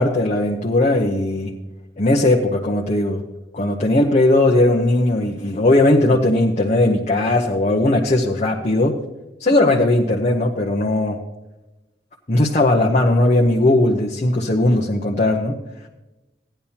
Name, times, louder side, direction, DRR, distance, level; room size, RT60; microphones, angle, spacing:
voice 1, 0.0-1.6 2.0-3.2 3.5-9.0 9.4-11.2 12.3-15.6, left 2 dB, 40° left, -1 dB, 0.9 m, -18 dB
16.0 x 10.0 x 2.9 m, 1.0 s
head